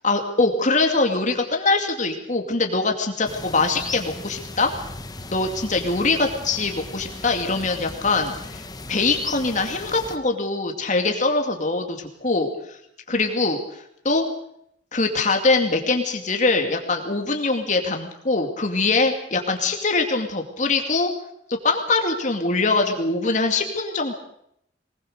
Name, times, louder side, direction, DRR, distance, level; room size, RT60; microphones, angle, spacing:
voice 1, 0.0-4.7 5.3-8.6 8.9-12.8 13.1-14.3 14.9-21.1 21.5-24.1, left 3 dB, 45° left, 4 dB, 2.5 m, -23 dB
sound 1, 3.2-10.2, left 3 dB, 20° left, 1.4 m, -37 dB
23.0 x 20.0 x 6.7 m, 0.73 s
head